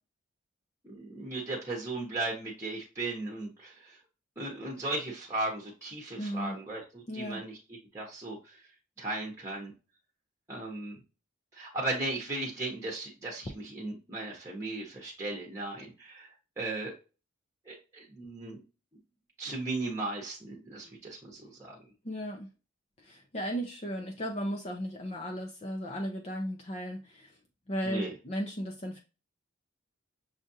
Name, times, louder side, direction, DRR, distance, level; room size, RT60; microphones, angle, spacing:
voice 1, 0.8-4.0 4.4-7.6 7.9-8.6 9.0-9.7 10.5-11.0 11.5-16.3 16.6-16.9 17.7-18.6 19.4-21.8 27.8-28.1, right 2 dB, 15° right, -2 dB, 0.9 m, -36 dB
voice 2, 6.2-6.6 7.1-7.4 22.0-22.5 23.0-27.4 27.7-29.0, equal, 30° left, 2 dB, 0.5 m, -35 dB
6.3 x 2.4 x 2.6 m, 0.31 s
head